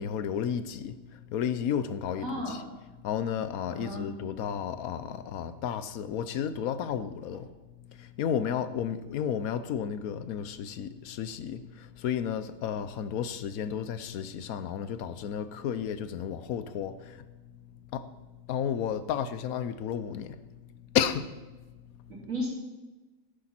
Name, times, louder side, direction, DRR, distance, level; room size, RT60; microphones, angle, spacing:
voice 1, 0.0-2.6 3.0-7.5 7.9-17.2 17.9-18.1 18.5-20.4 20.9-21.4, left 8 dB, 75° left, 1.1 m, -32 dB
voice 2, 2.2-2.6 3.7-4.0 22.1-22.5, equal, 65° right, 3.6 m, -34 dB
11.5 x 10.0 x 4.3 m
omnidirectional pair, 1.5 m